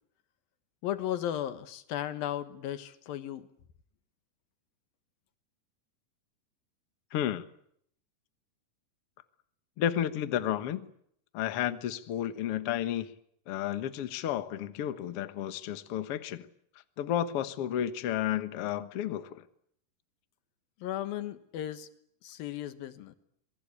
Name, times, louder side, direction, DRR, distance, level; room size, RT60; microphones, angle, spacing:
voice 1, 0.8-3.5 20.8-21.9 22.2-23.2, left 11 dB, 85° left, 3.1 m, -35 dB
voice 2, 7.1-7.5 9.8-10.9 11.3-13.1 13.5-16.5 17.0-19.5, left 11 dB, 55° left, 1.9 m, -32 dB
27.0 x 22.5 x 8.5 m
omnidirectional pair, 4.0 m